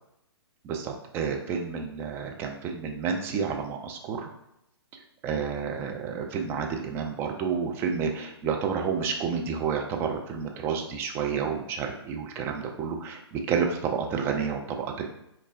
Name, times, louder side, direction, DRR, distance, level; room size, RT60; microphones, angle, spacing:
voice 1, 0.6-4.3 5.2-15.1, right 6 dB, 15° right, 3 dB, 0.4 m, -30 dB
5.3 x 2.1 x 2.5 m, 0.81 s
figure-of-eight pair, 125°, 14 cm